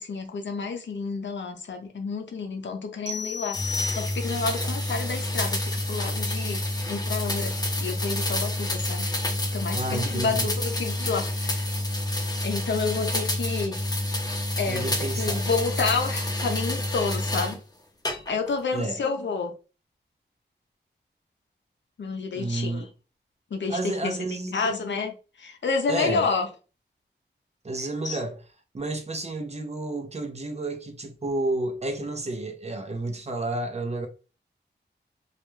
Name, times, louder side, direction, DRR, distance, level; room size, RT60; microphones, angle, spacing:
voice 1, 0.0-3.6 3.9-9.1 9.5-11.7 12.4-13.8 14.6-17.6 18.3-19.5 22.0-22.9 23.5-24.2 24.5-26.5 28.0-28.2, left 4 dB, 80° left, 0.5 m, -30 dB
sound 1, 3.1-4.6, left 4 dB, 80° right, 0.6 m, -33 dB
sound 2, 3.5-17.6 18.1-18.6, left 1 dB, 20° left, 0.6 m, -28 dB
voice 2, 9.7-10.5 14.7-15.5 18.7-19.0 22.3-22.9 23.7-24.8 25.9-26.3 27.6-28.4 28.7-34.1, right 2 dB, 35° right, 0.6 m, -31 dB
2.4 x 2.2 x 3.0 m
wide cardioid pair, 65°, 19 cm